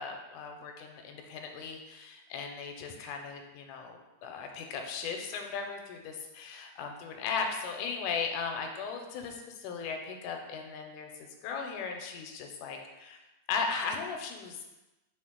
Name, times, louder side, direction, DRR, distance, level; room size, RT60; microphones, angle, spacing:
voice 1, 0.0-13.2 13.5-14.6, left 5 dB, 90° left, 4 dB, 2.0 m, -37 dB
5.8 x 2.5 x 3.6 m, 1.0 s
omnidirectional pair, 3.5 m